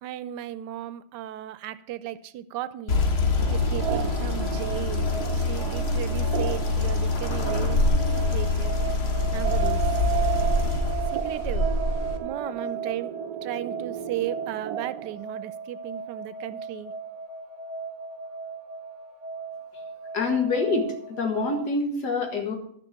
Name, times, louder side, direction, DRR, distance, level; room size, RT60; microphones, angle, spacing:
voice 1, 0.0-3.0 3.5-7.8 8.3-8.8 9.3-9.8 11.1-11.7 12.2-13.1 13.4-16.9, right 12 dB, 90° right, 15 dB, 1.2 m, -35 dB
sound 1, 2.9-12.2, left 2 dB, 45° left, 1.2 m, -25 dB
sound 2, 3.4-15.1, right 12 dB, 70° right, 1.0 m, -34 dB
sound 3, 3.7-21.7, right 4 dB, 45° right, 1.9 m, -38 dB
voice 2, 20.1-22.6, left 4 dB, 75° left, 3 dB, 2.4 m, -26 dB
11.5 x 6.1 x 6.6 m, 0.64 s
omnidirectional pair, 1.8 m